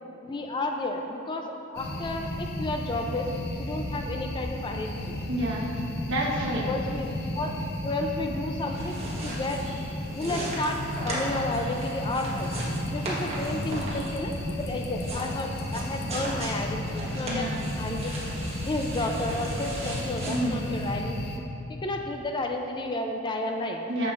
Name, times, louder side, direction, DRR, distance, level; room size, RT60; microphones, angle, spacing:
voice 1, 0.2-1.5 1.7-3.3 3.6-5.2 6.7-9.9 10.1-10.8 11.0-12.5 12.9-14.3 14.6-17.5 17.8-18.1 18.6-21.2 21.8-23.8, left 2 dB, 20° left, 3 dB, 0.3 m, -32 dB
sound 1, 1.8-21.4, left 1 dB, 50° left, 0.7 m, -34 dB
voice 2, 5.3-5.7 6.1-6.7 17.3-17.7 20.2-20.7 23.9-24.1, right 1 dB, 60° right, -3 dB, 1.2 m, -29 dB
sound 2, 8.5-21.0, right 1 dB, 30° right, 1.2 m, -37 dB
9.4 x 6.8 x 2.5 m, 2.9 s
head